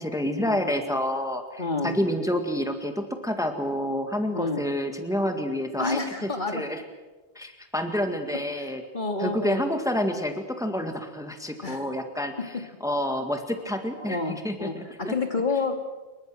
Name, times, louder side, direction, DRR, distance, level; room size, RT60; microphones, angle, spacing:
voice 1, 0.0-6.8 7.4-8.8 9.2-12.5 12.8-15.1, left 1 dB, 5° right, 5 dB, 1.9 m, -28 dB
voice 2, 1.6-1.9 4.3-4.6 5.8-6.6 8.6-9.6 11.6-11.9 12.5-12.6 14.0-15.7, left 3 dB, 45° left, 5 dB, 2.4 m, -29 dB
27.5 x 23.0 x 6.3 m, 1.2 s
omnidirectional pair, 1.1 m